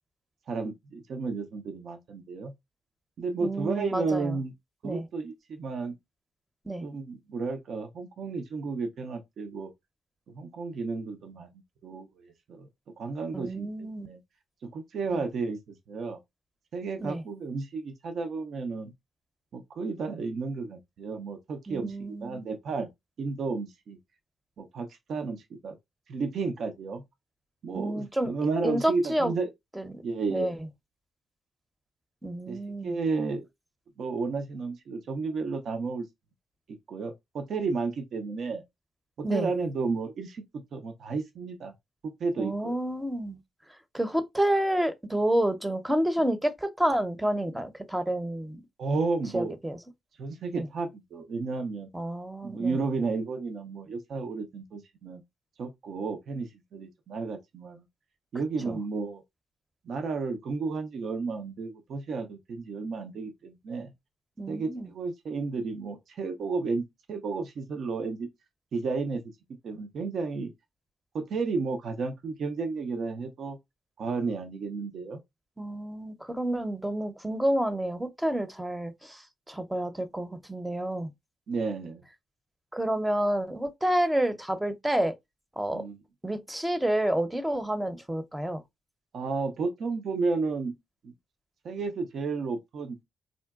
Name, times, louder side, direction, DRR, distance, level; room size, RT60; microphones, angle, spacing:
voice 1, 0.5-2.5 3.2-4.5 4.8-5.9 6.8-9.7 10.3-11.5 11.8-12.7 13.0-14.2 14.6-16.2 16.7-18.9 19.5-22.9 23.2-24.0 24.6-25.8 26.1-27.0 27.6-29.5 30.0-30.6 32.5-33.5 34.0-36.1 36.9-38.6 39.2-41.7 42.2-42.8 48.8-49.6 50.2-51.9 52.4-55.2 55.6-57.8 58.3-59.2 59.9-63.9 64.5-68.3 68.7-69.3 69.6-70.5 71.1-73.6 74.0-75.2 81.5-82.0 85.7-86.0 89.1-90.7 91.0-91.1 91.6-93.0, right 4 dB, 70° right, 0.5 m, -32 dB
voice 2, 3.4-4.4 4.8-5.1 6.7-6.9 13.3-14.1 15.1-15.2 17.0-17.2 21.7-22.4 27.7-28.3 28.6-29.3 29.7-30.0 30.3-30.6 32.2-33.0 39.2-39.5 42.4-43.4 43.9-48.6 49.3-49.8 50.5-50.7 51.9-52.8 58.6-58.8 64.4-64.9 75.6-81.1 82.7-85.1 85.6-85.8 86.2-88.6, right 1 dB, 10° right, 0.6 m, -29 dB
3.7 x 2.2 x 2.3 m
supercardioid pair, 60°, 0 cm